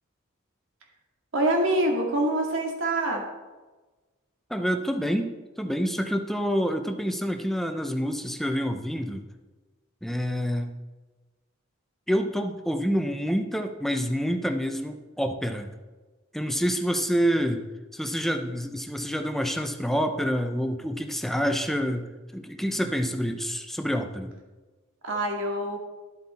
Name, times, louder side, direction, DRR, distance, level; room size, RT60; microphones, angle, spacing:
voice 1, 1.3-3.2 25.0-25.8, right 1 dB, 65° right, 1 dB, 2.1 m, -25 dB
voice 2, 4.5-9.2 10.0-10.7 12.1-15.7 16.3-17.6 17.9-22.1 22.3-24.3, equal, ahead, 6 dB, 0.7 m, -27 dB
12.0 x 7.8 x 4.3 m, 1.3 s
head